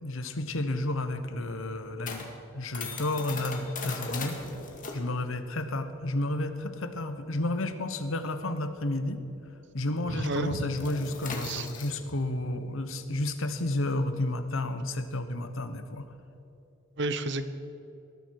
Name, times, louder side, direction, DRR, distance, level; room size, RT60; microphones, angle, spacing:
voice 1, 0.0-2.3 2.5-4.4 4.9-9.2 9.7-16.1, left 1 dB, 75° left, 9 dB, 1.1 m, -31 dB
sound 1, 0.5-9.5 9.7-10.0 10.3-16.0, left 4 dB, 40° left, 1.9 m, -41 dB
voice 2, 10.1-10.7 11.4-11.7 17.0-17.4, right 2 dB, 60° right, 11 dB, 0.9 m, -31 dB
19.0 x 13.5 x 4.7 m, 2.8 s
head